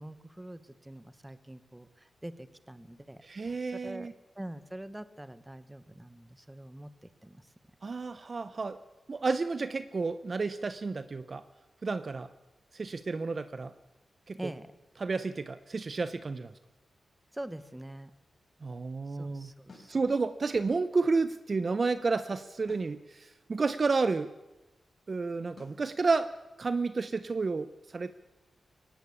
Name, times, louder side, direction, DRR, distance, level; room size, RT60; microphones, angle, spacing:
voice 1, 0.0-4.1 4.3-7.5 14.3-14.7 17.3-18.1 19.1-19.9, right 1 dB, 10° right, 14 dB, 1.3 m, -45 dB
voice 2, 3.3-4.1 7.8-8.8 9.1-11.4 11.8-12.3 12.7-13.7 14.3-14.5 15.0-16.5 18.6-19.5 19.9-24.3 25.1-26.3 26.6-28.1, right 4 dB, 35° right, 13 dB, 0.9 m, -31 dB
sound 1, 19.7-20.0 22.7-23.0 25.6-25.9, left 3 dB, 45° left, 5.7 m, -52 dB
23.5 x 18.5 x 8.5 m, 1.0 s
wide cardioid pair, 145°, 0 cm